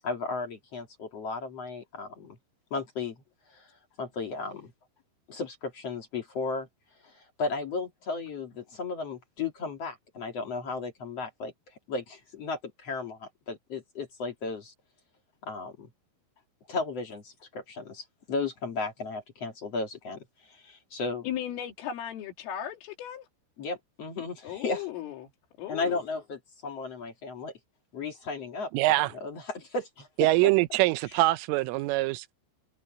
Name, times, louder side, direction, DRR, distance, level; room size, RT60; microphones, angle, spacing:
voice 1, 0.0-2.4 2.7-3.2 3.5-3.7 4.0-4.7 5.3-6.7 7.0-11.5 11.9-14.7 15.4-15.9 16.7-21.3 23.6-24.9 25.7-27.5 27.9-28.7 29.1-30.5 31.1-31.2, left 3 dB, 45° left, 2.3 m, -35 dB
voice 2, 21.2-23.3 24.4-25.3 25.6-26.0, left 10 dB, 80° left, 5.4 m, -36 dB
voice 3, 28.7-29.1 30.2-32.4, right 18 dB, 85° right, 3.3 m, -24 dB
open air
omnidirectional pair, 5.7 m